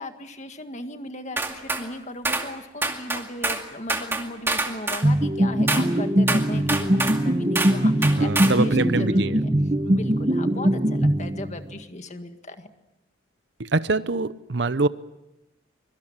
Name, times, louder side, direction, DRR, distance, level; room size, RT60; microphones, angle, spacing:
voice 1, 0.0-9.5 9.8-12.7, left 1 dB, 35° left, 1.8 m, -37 dB
sound 1, 1.4-1.8 2.2-2.5 2.8-3.6 3.9-5.1 5.7-5.9 6.3-7.2 7.5-7.8 8.0-8.6, right 2 dB, 10° right, 2.2 m, -26 dB
sound 2, 5.0-11.7, right 1 dB, 30° right, 1.2 m, -21 dB
voice 2, 8.2-9.4 13.6-14.9, right 3 dB, 60° right, 0.8 m, -24 dB
24.5 x 24.0 x 7.4 m
head